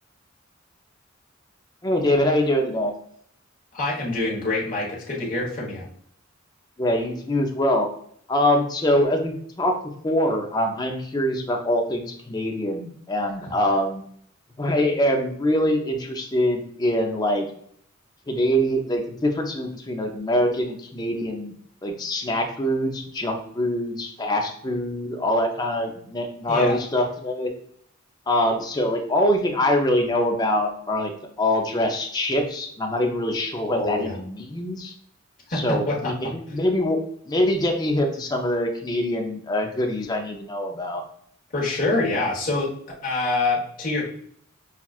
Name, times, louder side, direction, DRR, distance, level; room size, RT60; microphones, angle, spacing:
voice 1, 1.8-2.9 6.8-7.9 8.3-9.8 10.0-14.0 14.6-17.5 18.3-21.5 21.8-27.5 28.3-31.1 31.4-34.9 35.5-37.0 37.3-41.0, left 1 dB, 20° left, 2 dB, 0.5 m, -24 dB
voice 2, 3.7-5.8 13.4-13.5 26.5-26.8 33.7-34.2 35.5-36.1 41.5-42.7 43.0-44.0, left 2 dB, 40° left, -4 dB, 1.2 m, -25 dB
5.7 x 2.3 x 2.4 m, 0.65 s
head